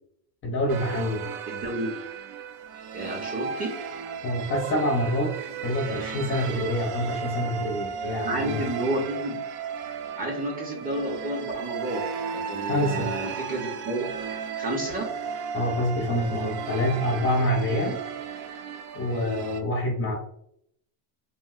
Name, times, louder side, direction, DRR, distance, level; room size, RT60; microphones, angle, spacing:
voice 1, 0.4-1.2 4.2-5.3 5.6-8.6 12.7-13.1 15.5-18.0 18.9-20.1, left 1 dB, 30° left, 1 dB, 0.5 m, -26 dB
sound 1, 0.7-19.6, right 7 dB, 75° right, 0.6 m, -35 dB
voice 2, 1.5-1.9 2.9-3.7 8.1-9.4 10.1-12.0 12.3-14.1 14.6-15.1, right 1 dB, 20° right, -1 dB, 0.6 m, -30 dB
3.0 x 2.6 x 2.3 m, 0.71 s
supercardioid pair, 125°, 46 cm